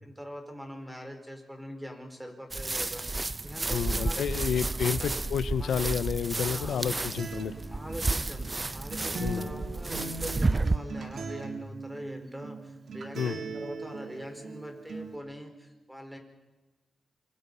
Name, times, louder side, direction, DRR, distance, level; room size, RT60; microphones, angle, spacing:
voice 1, 0.0-4.2 4.5-5.1 5.6-5.9 6.4-7.1 7.7-8.5 8.7-16.2, equal, 5° right, 5 dB, 4.6 m, -43 dB
sound 1, 2.5-10.8, right 3 dB, 25° right, 0.7 m, -31 dB
voice 2, 3.7-7.5 9.2-9.5 13.1-13.4, left 8 dB, 90° left, 14 dB, 0.8 m, -30 dB
Acoustic guitar, 7.2-15.2, right 3 dB, 70° right, 3.0 m, -40 dB
27.0 x 24.0 x 5.6 m, 1.2 s
cardioid pair, 90°, 0 cm